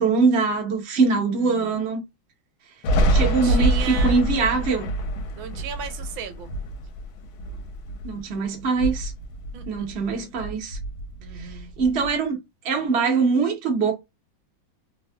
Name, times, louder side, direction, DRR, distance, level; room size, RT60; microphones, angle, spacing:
voice 1, 0.0-2.0 3.1-4.9 8.0-9.1 9.7-10.8 11.3-12.4 12.6-13.9, right 4 dB, 50° right, 0.8 m, -23 dB
voice 2, 1.3-1.8 3.1-4.2 5.4-6.5 9.5-9.9 11.2-11.7, right 7 dB, 85° right, 1.4 m, -36 dB
Thunder, 2.8-8.3 8.6-10.1 10.4-12.1, right 1 dB, 90° left, 1.4 m, -26 dB
3.5 x 2.3 x 2.2 m
omnidirectional pair, 2.2 m